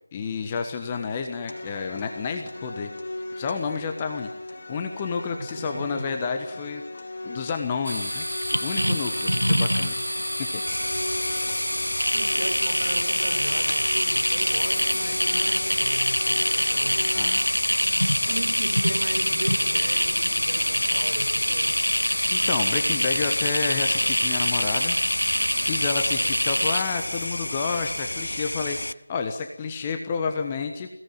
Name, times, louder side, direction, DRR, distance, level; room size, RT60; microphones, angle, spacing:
voice 1, 0.1-2.9 3.4-4.3 4.7-8.2 8.6-9.9 10.4-10.9 17.1-17.5 22.0-24.9 25.6-30.9, left 5 dB, 15° left, 5 dB, 1.2 m, -30 dB
sound 1, 1.5-17.5, left 2 dB, 40° left, 4.6 m, -38 dB
voice 2, 5.4-6.0 12.1-17.3 18.2-21.9, right 1 dB, 40° right, 3 dB, 5.9 m, -36 dB
sound 2, 7.8-26.8, equal, 90° left, 1.7 m, -25 dB
sound 3, 10.7-28.9, left 1 dB, 65° left, 0.8 m, -31 dB
22.5 x 17.5 x 9.5 m, 0.89 s
figure-of-eight pair, 165°, 0 cm